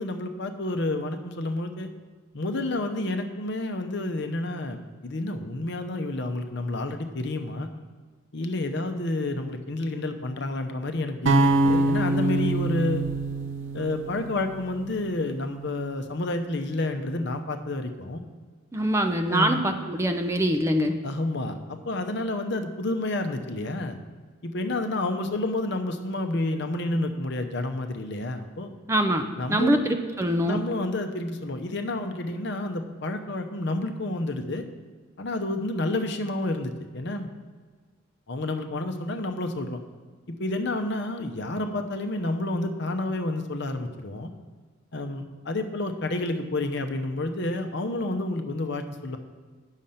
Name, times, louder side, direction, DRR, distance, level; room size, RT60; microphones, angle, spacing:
voice 1, 0.0-1.9 2.3-7.7 8.3-13.1 13.7-18.2 19.3-19.6 21.0-24.0 24.4-28.7 29.4-29.8 30.4-34.6 35.2-37.3 38.3-39.8 40.3-44.3 44.9-49.2, left 2 dB, 55° left, 7 dB, 0.8 m, -29 dB
sound 1, 11.3-15.4, right 2 dB, 70° right, 0.7 m, -25 dB
voice 2, 18.7-20.9 28.9-30.6, right 1 dB, 15° right, 5 dB, 0.5 m, -24 dB
9.0 x 6.5 x 5.6 m, 1.5 s
head